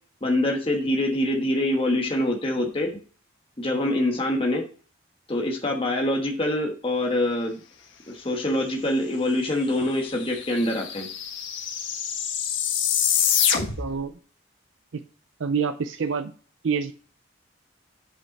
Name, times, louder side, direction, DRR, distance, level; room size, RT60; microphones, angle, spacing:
voice 1, 0.2-2.9 3.6-4.6 5.3-7.6 8.1-11.1, left 1 dB, 30° left, 1 dB, 1.3 m, -25 dB
sound 1, 9.5-9.6 9.8-14.0, left 8 dB, 70° left, 1.5 m, -26 dB
voice 2, 13.8-14.1 14.9-15.0 15.4-16.3 16.6-16.9, right 6 dB, 80° right, 9 dB, 0.5 m, -26 dB
8.0 x 5.3 x 4.1 m, 0.40 s
head